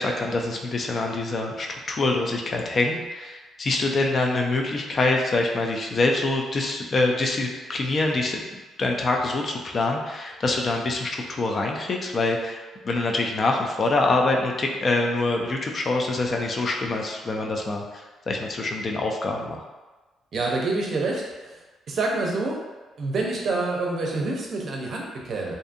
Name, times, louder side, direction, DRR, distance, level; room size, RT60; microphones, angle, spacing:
voice 1, 0.0-8.4 8.8-19.6, left 2 dB, 40° left, 1 dB, 0.4 m, -25 dB
voice 2, 20.3-21.6 21.9-22.6 23.0-25.5, right 3 dB, 55° right, -1 dB, 0.5 m, -27 dB
2.6 x 2.4 x 2.5 m, 1.2 s
cardioid pair, 90°, 0 cm